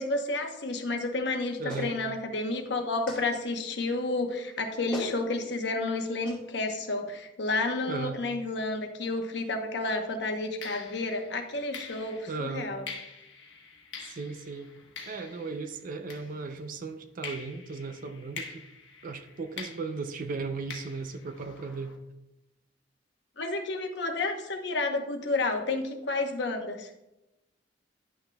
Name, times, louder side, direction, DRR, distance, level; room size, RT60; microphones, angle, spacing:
voice 1, 0.0-12.8 23.4-26.9, left 2 dB, 65° left, 4 dB, 0.9 m, -31 dB
voice 2, 1.6-2.0 7.9-8.2 12.3-12.7 14.0-14.7 15.1-18.7 19.0-21.9, right 4 dB, 50° right, 7 dB, 0.4 m, -36 dB
Clapping, 1.7-1.9 3.1-3.2 4.5-4.6 4.9-5.2 6.2-6.4, left 1 dB, 5° left, 2.0 m, -37 dB
sound 1, 9.5-9.7 10.6-16.8 17.2-22.0, left 4 dB, 85° left, 1.1 m, -46 dB
10.5 x 6.0 x 2.2 m, 0.93 s
head